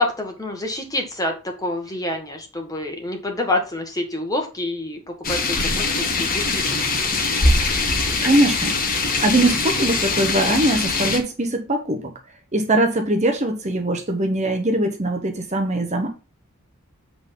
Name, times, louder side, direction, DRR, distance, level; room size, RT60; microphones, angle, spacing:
voice 1, 0.0-1.3 1.6-5.9 6.2-7.1, left 2 dB, 15° left, 1.5 m, -27 dB
sound 1, 5.2-11.2, left 3 dB, 40° left, 1.4 m, -22 dB
voice 2, 8.2-8.7 9.0-12.1 12.5-16.1, right 1 dB, 30° right, 1.0 m, -21 dB
8.0 x 3.8 x 5.4 m
head